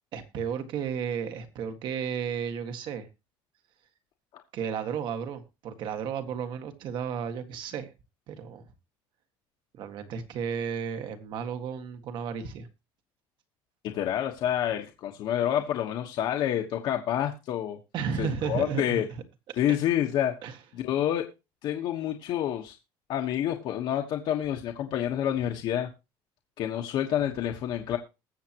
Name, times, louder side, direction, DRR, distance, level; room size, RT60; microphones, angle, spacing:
voice 1, 0.1-3.1 4.5-7.9 8.3-8.6 9.7-12.7 17.9-19.2 19.7-19.8 20.4-20.6, right 7 dB, 50° right, 8 dB, 1.7 m, -33 dB
voice 2, 13.8-17.8 18.2-19.1 19.6-20.3 20.7-21.2 21.6-22.7 23.1-25.9 26.6-28.0, left 11 dB, 50° left, 3 dB, 1.3 m, -28 dB
20.5 x 7.3 x 3.0 m, 0.27 s
cardioid pair, 165°, 10 cm